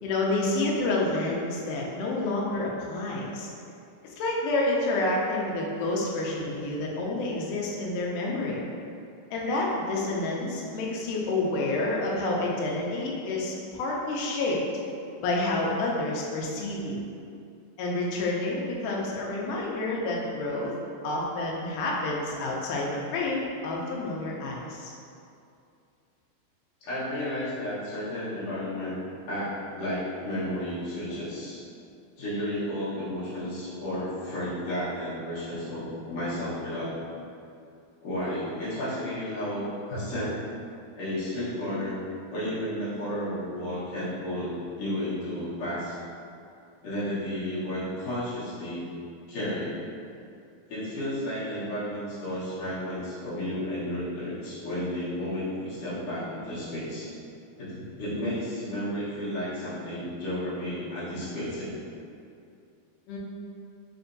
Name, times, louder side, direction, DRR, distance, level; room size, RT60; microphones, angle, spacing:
voice 1, 0.0-3.5 4.2-8.6 9.3-14.6 15.2-17.0 17.8-20.7 21.0-24.9 63.1-63.2, left 2 dB, 80° left, -3 dB, 1.8 m, -29 dB
voice 2, 26.8-29.0 29.3-31.6 32.2-37.1 38.0-40.4 41.0-41.9 42.3-44.5 44.8-46.0 46.8-48.9 49.3-49.8 50.7-57.1 57.6-61.7, left 1 dB, 60° left, -11 dB, 1.8 m, -32 dB
5.5 x 2.6 x 2.5 m, 2.5 s
omnidirectional pair, 4.2 m